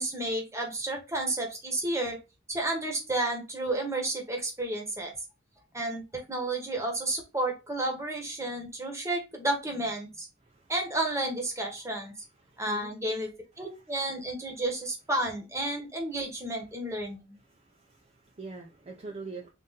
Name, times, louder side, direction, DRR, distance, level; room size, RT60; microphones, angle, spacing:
voice 1, 0.0-2.2 2.5-5.1 5.7-10.3 10.7-12.1 12.6-13.3 13.6-17.4, right 1 dB, 15° right, 1.1 m, -31 dB
voice 2, 12.4-12.9 17.5-19.5, right 3 dB, 35° right, 0.5 m, -44 dB
3.8 x 2.6 x 4.0 m
head